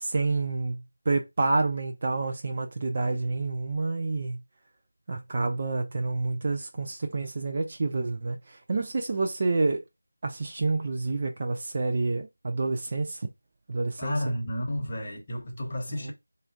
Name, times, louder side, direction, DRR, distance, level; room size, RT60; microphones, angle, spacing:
voice 1, 0.0-4.4 5.1-9.8 10.2-13.2 13.7-14.2 16.0-16.1, right 3 dB, 30° right, 0.3 m, -28 dB
voice 2, 14.0-16.1, left 1 dB, 25° left, 0.9 m, -31 dB
4.1 x 2.5 x 2.5 m
figure-of-eight pair, 170°, 0 cm